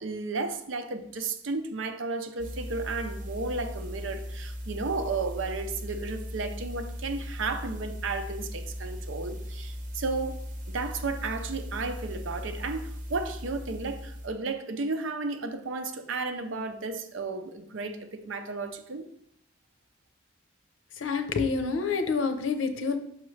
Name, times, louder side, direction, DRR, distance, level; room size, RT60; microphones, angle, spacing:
voice 1, 0.0-10.4 10.7-19.1, right 3 dB, 80° right, 0.6 m, -33 dB
sound 1, 2.4-14.3, equal, 40° right, 0.8 m, -38 dB
voice 2, 21.0-23.0, left 4 dB, 80° left, 0.7 m, -27 dB
6.3 x 5.9 x 3.2 m
head